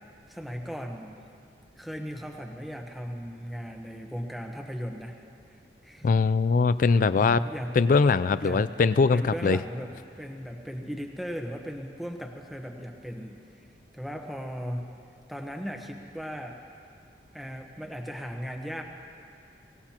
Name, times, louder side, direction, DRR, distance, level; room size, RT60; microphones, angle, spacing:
voice 1, 0.3-1.3 1.7-5.2 5.5-6.1 7.2-7.7 8.4-8.7 9.1-9.9 10.2-13.7 13.9-14.9 15.3-16.6 17.3-18.8, equal, ahead, 2 dB, 1.0 m, -37 dB
voice 2, 6.0-7.4 7.8-9.6, left 4 dB, 50° left, 14 dB, 0.3 m, -21 dB
23.5 x 18.0 x 2.9 m, 2.4 s
head